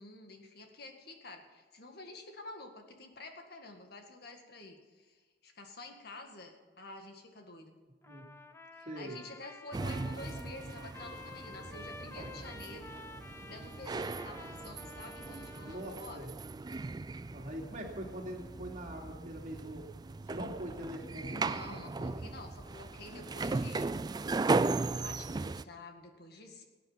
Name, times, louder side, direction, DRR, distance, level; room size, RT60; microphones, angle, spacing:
voice 1, 0.0-7.8 8.7-12.9 13.5-16.3 21.3-23.9 24.9-26.6, left 2 dB, 60° left, 4 dB, 1.9 m, -49 dB
Trumpet, 8.0-16.1, left 3 dB, 15° left, 0.7 m, -51 dB
voice 2, 8.8-9.2 15.6-16.3 17.3-19.9 20.2-21.4, equal, 45° right, 0 dB, 2.8 m, -42 dB
sound 1, 9.7-25.6, right 3 dB, 25° right, 0.3 m, -37 dB
18.5 x 9.7 x 5.8 m, 1.4 s
head